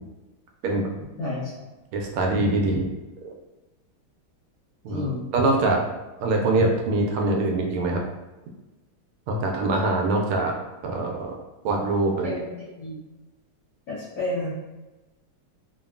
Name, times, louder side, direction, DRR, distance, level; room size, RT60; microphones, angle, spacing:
voice 1, 1.2-1.5 4.9-5.2 12.2-13.0 13.9-14.5, left 2 dB, 60° left, -8 dB, 1.0 m, -30 dB
voice 2, 1.9-2.9 3.2-3.3 4.8-5.8 6.2-8.0 9.3-10.6 10.8-11.4 11.6-12.4, right 2 dB, 80° right, 1 dB, 1.4 m, -23 dB
3.6 x 2.1 x 2.3 m, 1.1 s
omnidirectional pair, 2.4 m